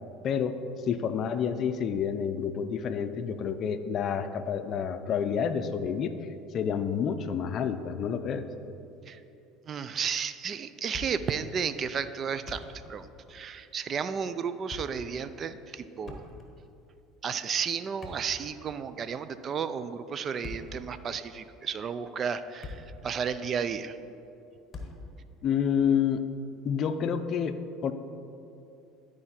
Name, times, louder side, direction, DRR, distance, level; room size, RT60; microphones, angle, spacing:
voice 1, 0.2-0.6 0.9-6.1 6.5-8.5 25.4-26.2 26.6-27.9, left 7 dB, 50° left, 10 dB, 0.5 m, -29 dB
voice 2, 9.7-12.6 12.9-16.2 17.2-24.0, right 6 dB, 40° right, 12 dB, 0.4 m, -33 dB
Thump thud, 10.9-11.5 11.7-11.8 12.3-13.0 13.3-13.5 14.4-15.1 16.0-16.7 17.8-18.8 20.2-20.9 21.6-21.7 22.3-23.1 23.3-23.5 24.7-25.2, left 3 dB, 30° left, 1.4 m, -43 dB
12.0 x 4.8 x 4.3 m, 2.8 s
supercardioid pair, 85°, 0 cm